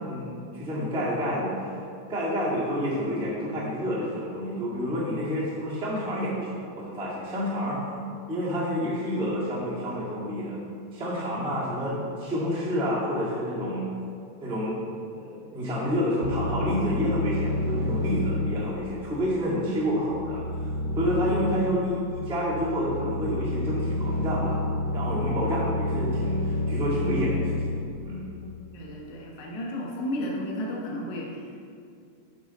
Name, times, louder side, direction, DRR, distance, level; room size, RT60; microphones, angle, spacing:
voice 1, 0.0-1.7 2.1-7.8 8.3-10.6 10.9-13.9 14.4-14.8 15.1-20.4 20.9-24.6 24.9-27.7 28.0-28.3, equal, 5° right, -8 dB, 0.7 m, -29 dB
sound 1, 16.2-28.7, left 1 dB, 80° right, 2.2 m, -29 dB
voice 2, 28.7-31.7, left 1 dB, 80° left, -2 dB, 1.0 m, -33 dB
8.6 x 5.6 x 4.2 m, 2.4 s
omnidirectional pair, 3.8 m